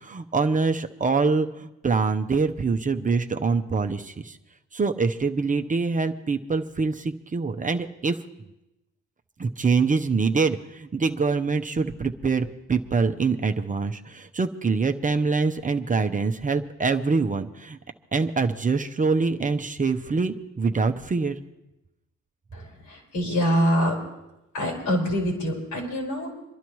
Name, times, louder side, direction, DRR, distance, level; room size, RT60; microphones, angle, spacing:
voice 1, 0.0-4.4 4.7-8.2 9.4-17.8 18.1-21.4, right 4 dB, 25° right, 7 dB, 0.7 m, -24 dB
voice 2, 22.5-24.0 24.5-26.3, equal, 75° left, -1 dB, 4.7 m, -25 dB
28.0 x 11.5 x 3.1 m, 0.94 s
cardioid pair, 90°, 30 cm